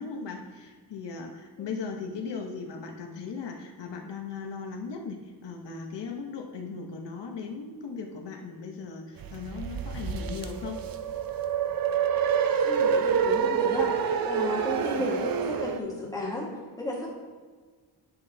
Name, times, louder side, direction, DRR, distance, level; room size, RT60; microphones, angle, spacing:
voice 1, 0.0-10.8 15.0-15.2, left 5 dB, 90° left, 2 dB, 0.9 m, -38 dB
sound 1, 9.2-15.8, right 7 dB, 60° right, 0.5 m, -27 dB
voice 2, 12.1-16.5 16.8-17.2, left 1 dB, 10° left, -5 dB, 1.5 m, -34 dB
9.9 x 5.8 x 2.7 m, 1.4 s
wide cardioid pair, 180°, 41 cm